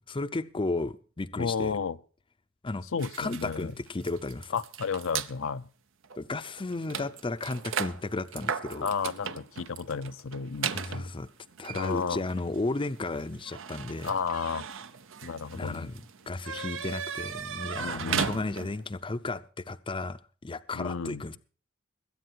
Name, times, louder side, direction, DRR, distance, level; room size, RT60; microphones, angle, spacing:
voice 1, 0.1-1.8 2.6-2.8 3.2-4.6 6.2-8.9 10.7-11.3 11.6-14.1 15.5-16.0 16.3-21.4, left 2 dB, 25° left, 0.6 m, -34 dB
voice 2, 1.4-2.0 2.9-3.7 4.5-5.6 8.8-11.1 11.7-12.2 14.0-14.7 15.2-15.9 17.8-18.3 20.7-21.3, left 5 dB, 65° left, 0.6 m, -32 dB
sound 1, 3.0-5.3 6.0-6.2 6.4-18.9, right 7 dB, 65° right, 0.9 m, -37 dB
21.0 x 8.9 x 4.5 m
head